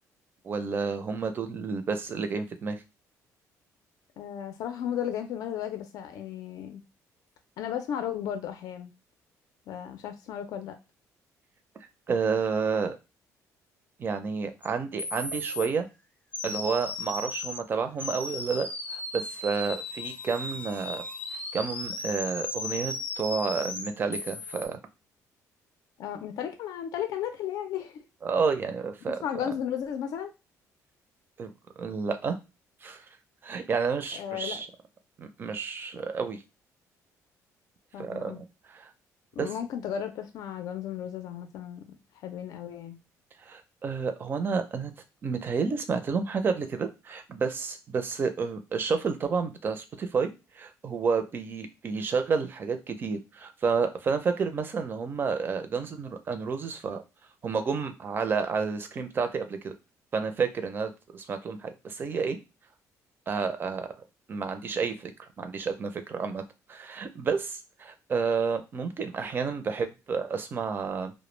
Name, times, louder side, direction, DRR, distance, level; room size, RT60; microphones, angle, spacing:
voice 1, 0.4-2.8 12.1-13.0 14.0-15.9 16.4-21.0 21.5-24.8 28.2-29.2 31.4-31.5 31.8-32.4 32.8-33.0 33.4-34.7 35.2-36.4 38.0-38.9 39.4-39.5 43.4-44.9 45.2-57.0 57.4-59.7 60.1-62.4 63.3-66.4 66.7-71.1, right 5 dB, 35° right, 8 dB, 0.4 m, -30 dB
voice 2, 4.2-6.8 7.6-8.9 9.7-10.8 26.0-28.0 29.2-30.3 34.1-34.6 37.9-38.4 39.3-41.8 42.2-43.0, left 9 dB, 70° left, 7 dB, 0.5 m, -34 dB
sound 1, 14.6-14.7 15.0-15.7 16.3-17.6 18.0-24.7, left 2 dB, 20° left, 0.5 m, -36 dB
2.2 x 2.0 x 3.1 m, 0.27 s
cardioid pair, 130°, 7 cm